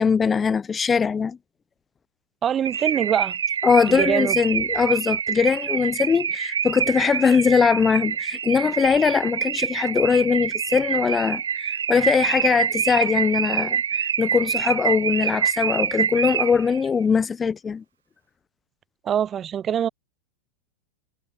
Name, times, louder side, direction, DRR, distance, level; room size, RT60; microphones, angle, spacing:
voice 1, 0.0-1.4 3.6-17.8, left 6 dB, 20° left, 1.9 m, -21 dB
voice 2, 2.4-3.4 3.9-4.4 19.0-19.9, right 9 dB, 30° right, 0.9 m, -23 dB
Car / Alarm, 2.7-16.8, right 8 dB, 80° right, 1.3 m, -26 dB
hypercardioid pair, 95°, 0 cm